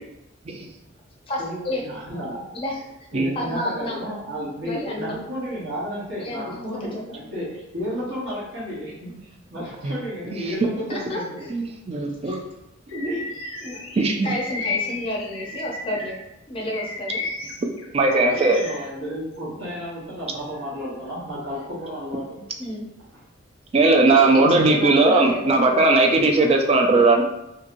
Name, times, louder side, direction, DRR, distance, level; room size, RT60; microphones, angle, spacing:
voice 1, 1.3-1.8 2.5-2.9 3.4-4.0 4.6-5.1 6.2-7.1 10.9-11.5 12.2-12.4 13.6-13.9 14.2-16.2 16.5-17.5 22.6-22.9 24.2-25.8, left 1 dB, 25° left, -2 dB, 0.5 m, -30 dB
voice 2, 1.9-2.4 3.1-11.5 12.9-13.3 18.1-22.4, equal, 60° right, -8 dB, 1.0 m, -32 dB
voice 3, 11.5-12.4 14.0-14.3 17.9-18.6 23.7-27.2, right 3 dB, 30° right, 3 dB, 0.3 m, -18 dB
Bird vocalization bird call bird song, 12.9-16.2 16.6-18.8, left 4 dB, 75° left, 0.5 m, -33 dB
2.7 x 2.7 x 2.5 m, 0.89 s
head